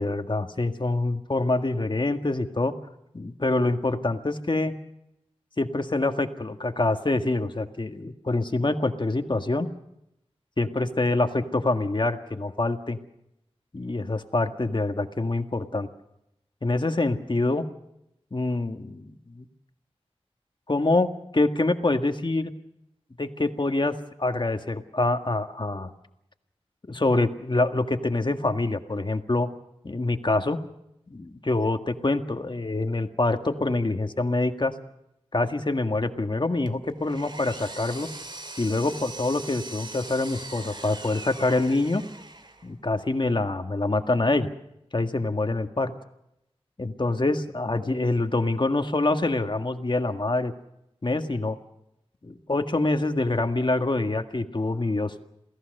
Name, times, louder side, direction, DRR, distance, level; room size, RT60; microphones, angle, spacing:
voice 1, 0.0-2.7 3.1-4.7 5.6-9.7 10.6-13.0 13.7-15.9 16.6-17.7 18.3-19.5 20.7-22.5 23.2-25.9 26.9-29.5 29.8-30.6 31.1-34.7 35.3-38.1 38.6-42.0 42.6-44.5 44.9-45.9 46.8-50.5 51.0-51.6 52.2-55.1, left 2 dB, 45° left, 7 dB, 1.8 m, -25 dB
Power tool, 36.7-42.7, right 2 dB, 45° right, 2.6 m, -41 dB
28.0 x 17.0 x 6.6 m, 0.82 s
wide cardioid pair, 65°, 11 cm